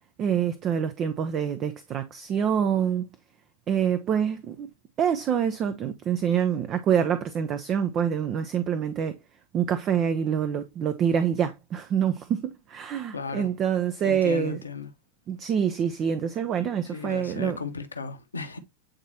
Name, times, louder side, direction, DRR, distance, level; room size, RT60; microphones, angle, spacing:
voice 1, 0.2-3.1 3.7-4.7 5.0-9.2 9.5-14.6 15.3-17.6, right 8 dB, 30° right, 0.7 m, -26 dB
voice 2, 13.1-13.5 14.0-14.9 16.9-18.6, left 5 dB, 75° left, 1.1 m, -35 dB
8.9 x 4.2 x 2.8 m
figure-of-eight pair, 90°, 0 cm